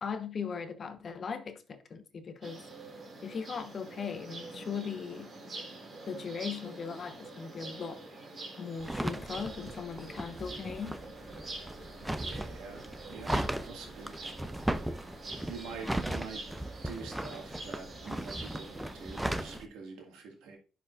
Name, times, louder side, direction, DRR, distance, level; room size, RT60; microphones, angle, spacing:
voice 1, 0.0-2.6 3.2-5.3 6.1-8.0 8.6-11.0, left 6 dB, 50° left, 1.0 m, -38 dB
sound 1, 2.4-19.6, right 2 dB, 45° right, 3.6 m, -46 dB
sound 2, 8.8-19.7, right 1 dB, 10° right, 0.6 m, -37 dB
voice 2, 12.0-14.2 15.5-20.6, right 4 dB, 85° right, 1.9 m, -46 dB
10.5 x 5.4 x 2.5 m
supercardioid pair, 65°, 0 cm